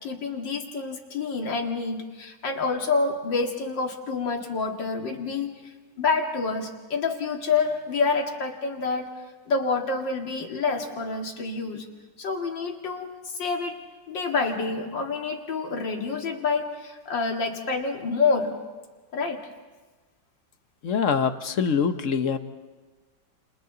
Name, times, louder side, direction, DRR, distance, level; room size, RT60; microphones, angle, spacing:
voice 1, 0.0-9.1 9.5-11.9 12.2-13.8 14.1-18.6 19.1-19.5, left 4 dB, 75° left, 2 dB, 2.7 m, -28 dB
voice 2, 20.8-22.4, left 6 dB, 50° left, 9 dB, 1.1 m, -24 dB
30.0 x 28.5 x 3.9 m, 1.3 s
omnidirectional pair, 2.0 m